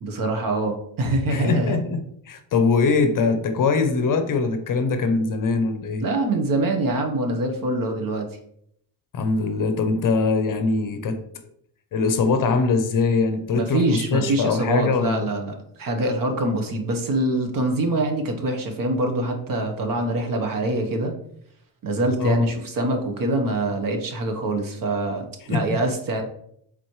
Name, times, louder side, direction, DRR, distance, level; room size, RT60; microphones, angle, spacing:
voice 1, 0.0-1.8 6.0-8.3 13.5-21.1 21.8-26.2, right 2 dB, 45° right, 5 dB, 1.2 m, -24 dB
voice 2, 1.3-2.0 2.3-6.0 9.1-11.2 11.9-15.3 22.2-22.5 25.5-25.8, left 4 dB, 45° left, 7 dB, 0.8 m, -22 dB
7.6 x 4.0 x 3.2 m, 0.70 s
cardioid pair, 150°, 45 cm